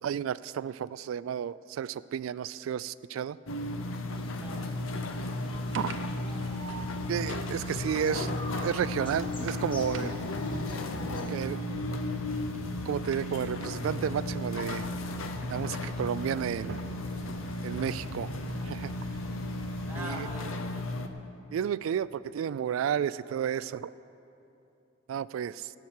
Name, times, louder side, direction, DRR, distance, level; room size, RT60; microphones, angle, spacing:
voice 1, 0.0-3.4 5.7-5.9 7.1-8.3 8.6-10.2 11.3-11.6 12.9-14.9 15.5-16.8 17.6-18.3 18.6-18.9 20.0-20.3 21.5-23.9 25.1-25.7, right 8 dB, 85° right, 17 dB, 0.3 m, -32 dB
sound 1, 3.5-21.1, left 2 dB, 85° left, 0.8 m, -35 dB
sound 2, 4.1-11.5, left 1 dB, 25° left, 1.3 m, -47 dB
voice 2, 4.3-5.3 19.8-21.0, equal, 10° right, -3 dB, 1.0 m, -44 dB
sound 3, 5.5-20.4, right 2 dB, 65° right, 0.8 m, -46 dB
17.5 x 5.9 x 8.2 m, 2.8 s
head